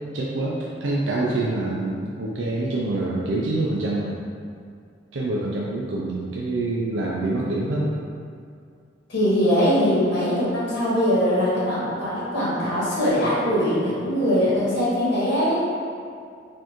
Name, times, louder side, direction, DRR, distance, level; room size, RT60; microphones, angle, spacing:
voice 1, 0.1-4.2 5.1-7.9, right 2 dB, 80° right, -4 dB, 0.4 m, -26 dB
voice 2, 9.1-15.6, equal, 75° left, -9 dB, 1.4 m, -21 dB
4.2 x 2.6 x 3.0 m, 2.3 s
head